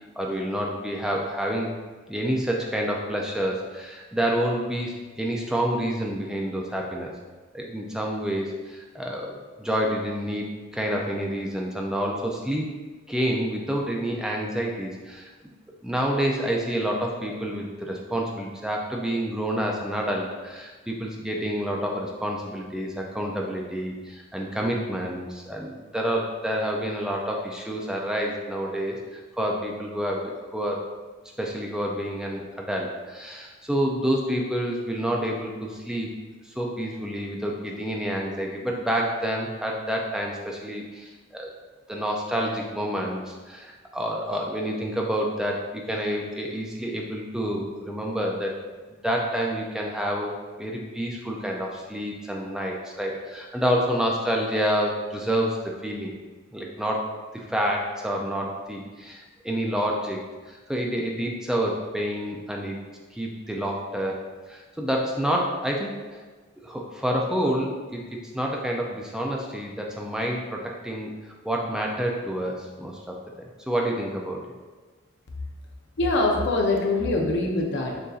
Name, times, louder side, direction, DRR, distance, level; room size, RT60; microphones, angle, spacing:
voice 1, 0.2-1.7 2.1-7.1 7.5-9.3 9.6-10.5 10.7-12.7 13.1-15.3 15.8-30.8 31.4-36.1 36.4-41.5 41.9-48.6 48.9-50.3 50.6-55.6 55.8-56.1 56.5-57.1 57.3-62.8 63.1-64.2 64.5-66.2 66.6-71.1 71.4-74.4, equal, 5° right, -1 dB, 0.3 m, -28 dB
voice 2, 76.0-78.0, left 2 dB, 60° left, 1 dB, 0.6 m, -23 dB
6.5 x 2.6 x 2.4 m, 1.3 s
head